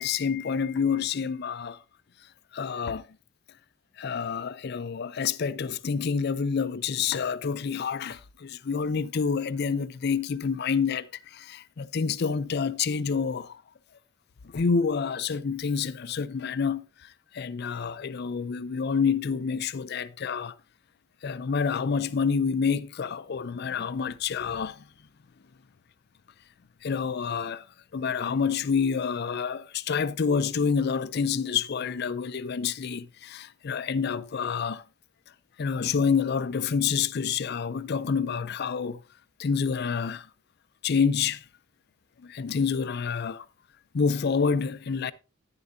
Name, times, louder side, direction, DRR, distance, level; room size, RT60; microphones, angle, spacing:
voice 1, 0.0-1.8 2.5-3.0 4.0-13.6 14.4-20.6 21.2-24.8 26.8-27.7 27.9-34.8 35.6-39.0 39.4-40.3 40.8-41.4 42.2-43.5 43.9-45.1, left 6 dB, 50° left, 0.4 m, -28 dB
10.5 x 9.7 x 2.6 m
head